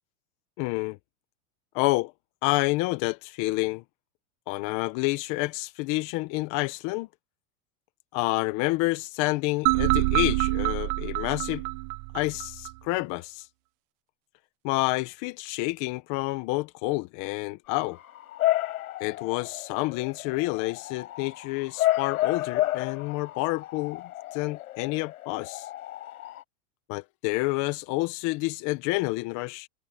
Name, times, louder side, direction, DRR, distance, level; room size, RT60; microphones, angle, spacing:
voice 1, 0.6-1.0 1.7-2.1 2.4-3.8 4.5-7.1 8.1-11.6 12.1-13.5 14.6-18.0 19.0-24.0 24.3-25.7 26.9-29.7, left 22 dB, 45° left, 1.2 m, -28 dB
Item Get Inorganic, 9.7-12.7, right 23 dB, 50° right, 1.1 m, -26 dB
Bark / Motor vehicle (road) / Siren, 17.7-26.4, left 15 dB, 90° left, 5.3 m, -31 dB
supercardioid pair, 145°, 42 cm